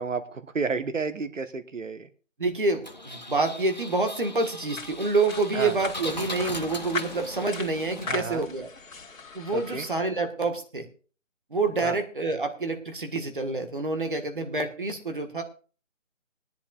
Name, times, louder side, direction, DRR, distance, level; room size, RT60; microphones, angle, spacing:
voice 1, 0.0-2.1 5.5-5.7 8.1-8.4 9.5-9.8 11.8-12.0, right 4 dB, 75° right, 11 dB, 1.3 m, -31 dB
voice 2, 2.4-8.7 9.3-10.9 11.5-15.4, right 3 dB, 40° right, 6 dB, 1.6 m, -27 dB
Engine, 2.8-8.5, left 2 dB, 35° left, 0.8 m, -39 dB
sound 1, 4.8-10.0, left 4 dB, 90° left, 2.1 m, -39 dB
20.5 x 11.0 x 2.5 m, 0.38 s
figure-of-eight pair, 180°, 39 cm